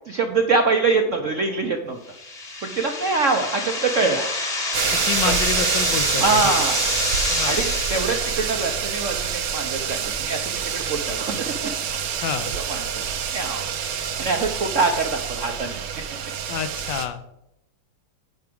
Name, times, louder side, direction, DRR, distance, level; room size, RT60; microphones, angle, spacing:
voice 1, 0.1-2.0 2.6-4.3 5.2-5.4 6.1-6.8 7.4-10.4 10.7-11.7 12.7-13.0 13.3-13.7 14.2-15.8 16.1-16.2, right 3 dB, 60° right, 4 dB, 0.8 m, -24 dB
sound 1, 2.1-9.0, left 2 dB, 25° left, 1.2 m, -28 dB
sound 2, 4.7-17.1, right 8 dB, 80° right, 1.7 m, -27 dB
voice 2, 5.0-6.6 7.3-7.6 12.2-12.6 16.5-17.2, left 8 dB, 70° left, 11 dB, 1.3 m, -28 dB
9.4 x 4.8 x 7.7 m, 0.84 s
omnidirectional pair, 2.2 m